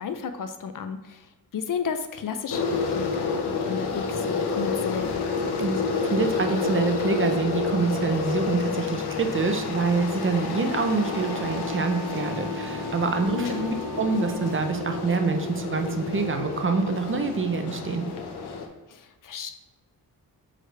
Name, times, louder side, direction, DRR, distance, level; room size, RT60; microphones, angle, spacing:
voice 1, 0.0-5.3 13.4-13.7 18.9-19.5, left 6 dB, 55° left, 8 dB, 0.6 m, -33 dB
sound 1, 2.5-18.7, left 4 dB, 75° left, 1.0 m, -29 dB
voice 2, 5.6-18.1, right 4 dB, 30° right, 6 dB, 0.6 m, -26 dB
Wind instrument woodwind instrument, 10.8-15.0, equal, 85° right, 0.8 m, -39 dB
6.2 x 4.9 x 3.3 m, 1.1 s
wide cardioid pair, 115°, 39 cm